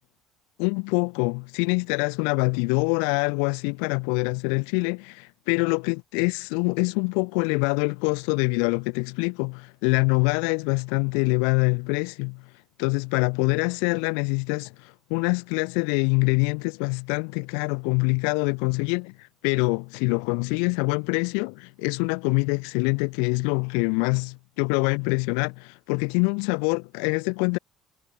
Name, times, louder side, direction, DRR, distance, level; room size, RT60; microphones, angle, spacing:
voice 1, 0.6-12.4 12.8-19.1 19.4-27.6, left 40 dB or more, 90° left, 4.8 m, -25 dB
cardioid pair, 120°, 0 cm